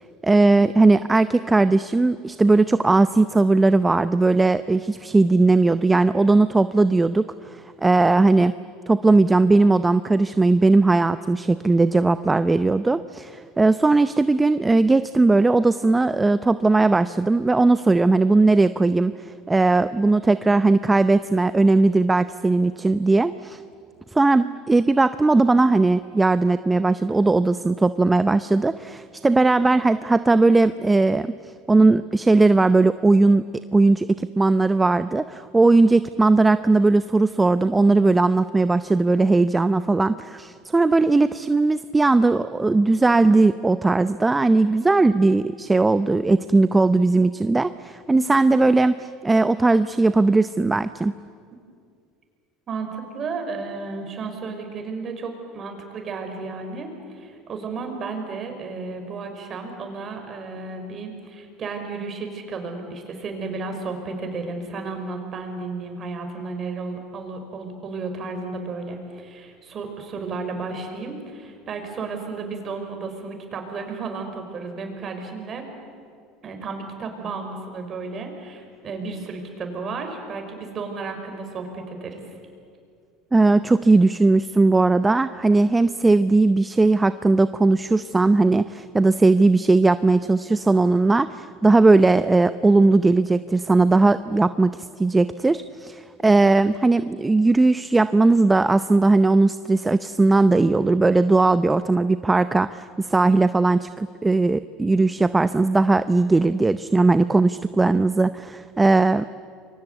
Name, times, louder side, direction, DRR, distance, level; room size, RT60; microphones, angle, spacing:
voice 1, 0.2-8.5 8.9-23.6 24.1-31.3 31.7-51.1 83.3-109.3, right 3 dB, 15° right, 13 dB, 0.7 m, -18 dB
voice 2, 52.7-75.7 76.4-82.2, right 4 dB, 40° right, 5 dB, 5.5 m, -33 dB
28.5 x 23.0 x 8.3 m, 2.3 s
supercardioid pair, 95°, 0 cm